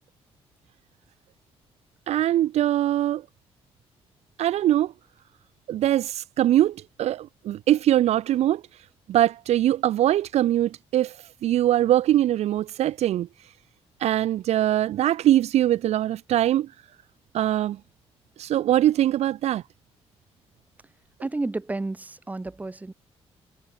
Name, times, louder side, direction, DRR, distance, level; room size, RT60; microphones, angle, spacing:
voice 1, 2.1-3.2 4.4-4.9 5.7-8.6 9.1-11.2 11.4-13.3 14.0-16.7 17.3-17.8 18.4-19.6, right 12 dB, 75° right, 0.6 m, -22 dB
voice 2, 21.2-22.9, right 2 dB, 15° right, 4.4 m, -31 dB
cardioid pair, 155°, 11 cm